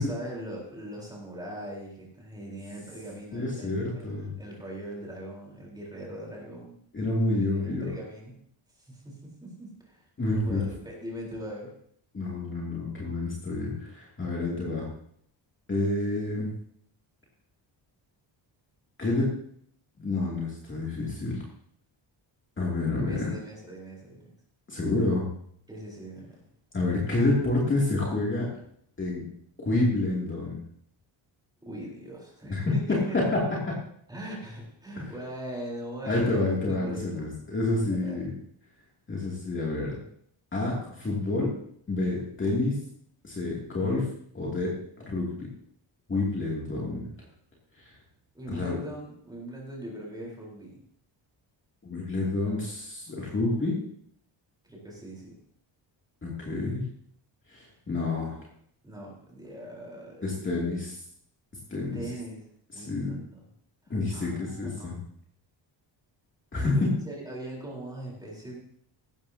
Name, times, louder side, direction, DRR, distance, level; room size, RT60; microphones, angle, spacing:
voice 1, 0.0-6.7 7.5-8.3 8.8-10.1 10.4-11.7 22.9-24.3 25.7-26.4 31.6-33.2 34.1-37.4 37.9-38.2 48.3-50.8 54.6-55.4 58.8-60.2 61.9-62.5 62.7-63.4 63.8-64.9 66.6-68.6, right 1 dB, 10° right, -3 dB, 4.0 m, -41 dB
voice 2, 3.3-4.3 6.9-8.0 10.2-10.6 12.1-14.9 15.7-16.5 19.0-19.3 20.0-21.4 22.6-23.3 24.7-25.3 26.7-28.5 29.0-29.2 29.6-30.6 32.5-33.7 35.0-35.1 36.1-38.3 39.1-40.0 40.5-41.5 41.9-42.8 43.2-44.1 44.3-44.7 45.0-45.5 46.1-47.1 47.8-47.9 48.5-48.8 51.8-53.8 56.2-56.8 57.5-58.4 60.2-61.0 61.7-62.0 62.7-63.2 63.9-65.0 66.5-66.9, left 2 dB, 25° left, -4 dB, 2.6 m, -28 dB
16.0 x 12.5 x 2.8 m, 0.66 s
wide cardioid pair, 165°, 46 cm